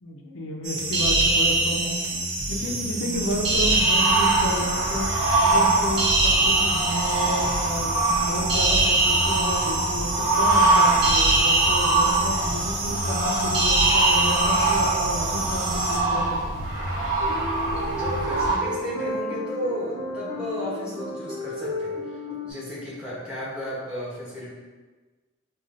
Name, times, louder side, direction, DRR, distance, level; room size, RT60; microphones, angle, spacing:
voice 1, 0.0-2.2 2.5-5.1 5.4-16.2 16.5-16.7, left 1 dB, 75° left, 1 dB, 0.5 m, -32 dB
sound 1, 0.6-16.0, right 2 dB, 55° right, 0.5 m, -24 dB
sound 2, 3.1-18.6, right 2 dB, 90° right, 0.9 m, -24 dB
sound 3, 17.2-22.5, left 1 dB, 25° right, 1.3 m, -33 dB
voice 2, 17.7-22.2 22.4-24.5, equal, 5° right, -9 dB, 0.9 m, -33 dB
4.9 x 2.3 x 2.5 m, 1.3 s
head